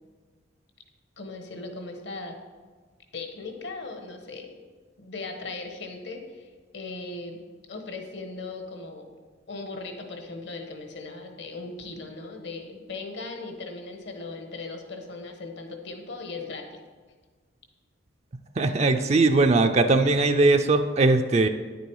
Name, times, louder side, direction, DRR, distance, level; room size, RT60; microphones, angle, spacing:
voice 1, 1.2-2.4 3.1-4.5 5.0-7.4 7.7-9.1 9.5-16.7, left 3 dB, 65° left, 4 dB, 1.2 m, -38 dB
voice 2, 18.6-21.5, right 3 dB, 35° right, 7 dB, 0.4 m, -20 dB
9.8 x 6.8 x 4.7 m, 1.5 s
head